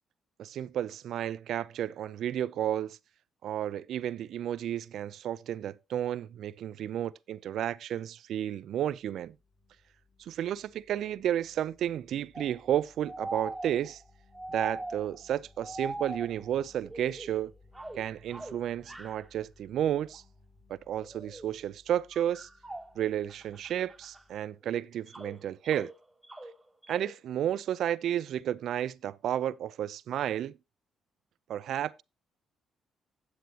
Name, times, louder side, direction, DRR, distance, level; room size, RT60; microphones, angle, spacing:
voice 1, 0.4-3.0 3.4-9.4 10.2-14.0 14.5-17.5 17.9-20.2 20.7-22.5 23.0-25.9 26.9-30.6 31.5-32.0, right 11 dB, 75° right, 0.4 m, -32 dB
sound 1, 8.9-24.4, left 3 dB, 40° left, 3.0 m, -61 dB
sound 2, 12.3-15.3 15.6-17.4 17.7-19.3 20.1-20.2 21.0-21.5 22.1-24.2 24.6-27.2, right 2 dB, 5° right, 1.1 m, -42 dB
9.5 x 8.1 x 2.9 m
cardioid pair, 90°, 0 cm